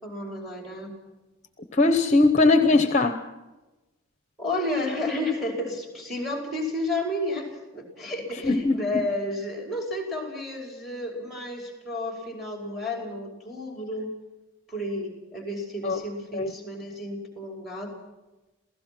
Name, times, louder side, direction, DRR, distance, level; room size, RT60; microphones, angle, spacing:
voice 1, 0.0-0.9 4.4-14.1 14.7-17.9, left 1 dB, ahead, 1 dB, 4.9 m, -31 dB
voice 2, 1.7-3.3 8.4-9.0 15.8-16.0 16.3-16.5, left 3 dB, 35° left, 8 dB, 0.9 m, -20 dB
28.0 x 17.0 x 6.1 m, 1.1 s
head